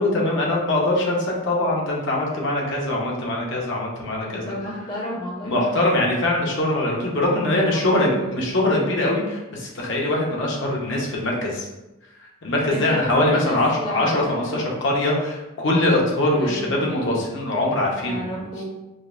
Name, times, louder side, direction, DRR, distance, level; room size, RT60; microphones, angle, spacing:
voice 1, 0.0-4.5 5.4-11.7 12.2-18.3, left 1 dB, 55° left, -2 dB, 0.7 m, -22 dB
voice 2, 4.2-5.8 7.4-8.4 12.7-14.7 16.3-17.2 18.0-18.6, equal, 20° left, -4 dB, 0.6 m, -32 dB
5.0 x 2.0 x 2.5 m, 1.0 s
head